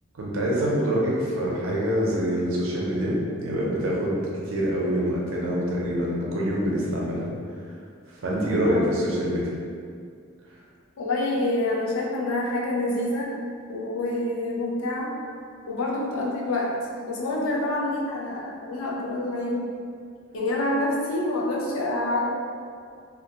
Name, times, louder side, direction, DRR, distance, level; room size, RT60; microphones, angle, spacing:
voice 1, 0.1-7.3 8.2-9.5, equal, 75° right, -4 dB, 0.6 m, -25 dB
voice 2, 11.0-13.3 13.7-15.1 15.7-16.8 17.0-19.7 20.3-22.3, left 2 dB, 80° left, -3 dB, 0.5 m, -27 dB
2.4 x 2.2 x 2.7 m, 2.3 s
head